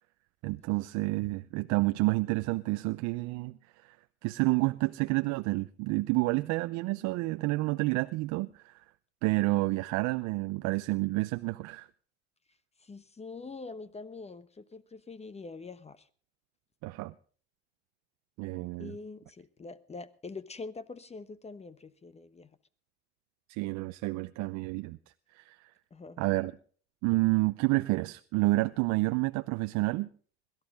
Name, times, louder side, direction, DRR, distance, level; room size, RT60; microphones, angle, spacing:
voice 1, 0.4-4.0 4.2-8.8 9.2-11.9 16.8-17.1 18.4-19.0 23.5-25.0 25.3-25.7 26.2-26.6 27.0-30.1, right 22 dB, 60° right, 0.7 m, -29 dB
voice 2, 12.8-16.0 18.8-22.5 25.9-26.2, left 3 dB, 20° left, 1.0 m, -44 dB
22.0 x 12.5 x 3.6 m
hypercardioid pair, 85°, 32 cm